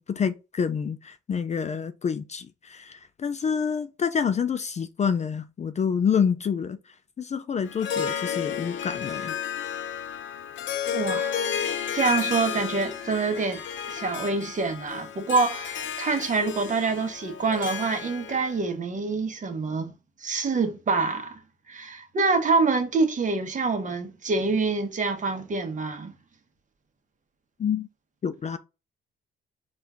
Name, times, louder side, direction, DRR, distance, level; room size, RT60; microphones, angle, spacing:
voice 1, 0.0-6.8 7.2-9.3 27.6-27.9 28.2-28.6, left 7 dB, 35° left, 0.4 m, -27 dB
Harp, 7.7-18.6, left 8 dB, 70° left, 0.7 m, -32 dB
voice 2, 10.9-11.4 11.9-13.6 13.9-19.9 20.2-21.4 21.7-26.1, right 4 dB, 40° right, 1.1 m, -26 dB
4.3 x 2.5 x 3.6 m
cardioid pair, 90°, 20 cm